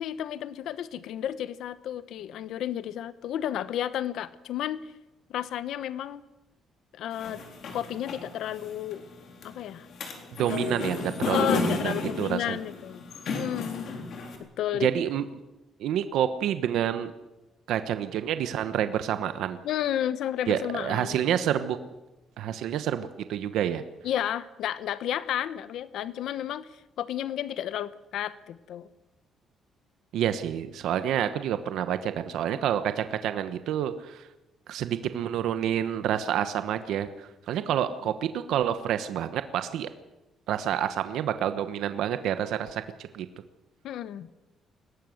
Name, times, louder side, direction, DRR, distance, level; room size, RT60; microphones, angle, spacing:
voice 1, 0.0-4.8 5.3-6.2 6.9-7.4 7.7-9.0 9.4-9.9 10.5-10.8 11.2-13.0 13.3-13.9 14.4-14.9 19.6-21.2 24.0-28.9 43.8-44.3, left 11 dB, 65° left, 14 dB, 0.9 m, -32 dB
sound 1, 7.1-14.4, left 4 dB, 50° left, 3.8 m, -33 dB
voice 2, 10.4-12.6 14.8-15.2 15.8-17.1 17.7-19.6 20.5-21.8 22.4-23.8 30.1-34.3 34.7-39.9 40.5-42.8 43.1-43.3, right 10 dB, 70° right, 10 dB, 1.1 m, -28 dB
21.5 x 18.0 x 7.9 m, 1.0 s
cardioid pair, 180°, 0 cm